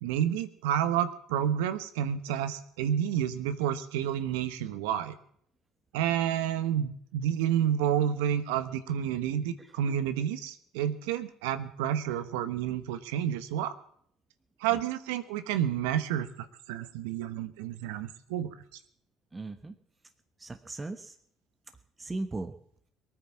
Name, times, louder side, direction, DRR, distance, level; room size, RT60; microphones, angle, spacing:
voice 1, 0.0-5.1 5.9-13.7 14.6-16.3 16.7-18.5, right 10 dB, 80° right, 11 dB, 1.0 m, -30 dB
voice 2, 9.6-9.9 14.7-14.8 19.3-19.7 20.4-21.1 22.0-22.5, right 2 dB, 20° right, 8 dB, 1.2 m, -38 dB
19.0 x 9.4 x 7.3 m, 0.65 s
hypercardioid pair, 65°, 0 cm